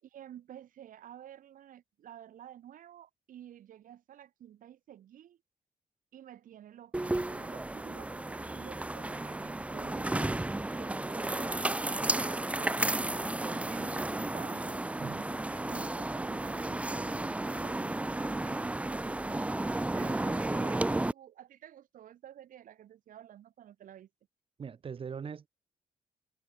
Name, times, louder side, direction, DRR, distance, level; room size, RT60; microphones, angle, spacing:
voice 1, 0.0-5.4 6.1-10.3 10.7-14.8 15.5-19.4 19.9-24.1, right 11 dB, 75° right, 4.9 m, -51 dB
sound 1, 6.9-21.1, right 2 dB, 10° right, 1.0 m, -33 dB
voice 2, 24.6-25.5, right 6 dB, 40° right, 7.1 m, -40 dB
wide cardioid pair, 160°, 14 cm